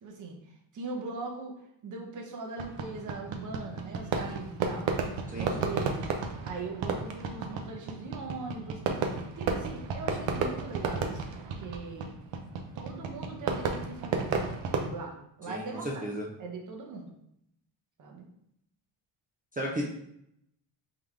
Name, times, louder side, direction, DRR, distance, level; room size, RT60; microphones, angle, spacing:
voice 1, 0.0-1.5 1.8-4.9 5.3-6.0 6.4-8.8 9.4-12.2 12.7-14.5 14.9-16.1 16.4-17.1 18.0-18.3, right 3 dB, 40° right, 1 dB, 0.8 m, -40 dB
Fireworks, 2.6-14.9, right 5 dB, 70° right, 0.7 m, -33 dB
voice 2, 5.3-5.7 15.5-16.2 19.5-19.8, right 1 dB, 20° right, -2 dB, 0.3 m, -34 dB
3.8 x 3.3 x 3.5 m, 0.75 s
cardioid pair, 180°, 48 cm